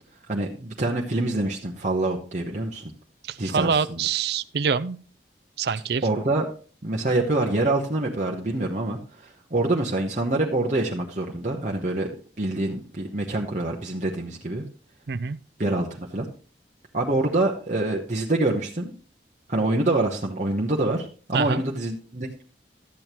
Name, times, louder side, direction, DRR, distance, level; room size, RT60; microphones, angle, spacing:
voice 1, 0.3-2.9 3.4-4.0 6.0-6.5 6.8-14.6 15.6-16.2 16.9-18.9 19.5-22.4, right 2 dB, 40° right, -1 dB, 1.0 m, -26 dB
voice 2, 3.2-5.0 5.6-6.0 15.1-15.4 21.3-21.6, right 6 dB, 65° right, 17 dB, 0.5 m, -25 dB
12.5 x 8.6 x 3.0 m, 0.38 s
head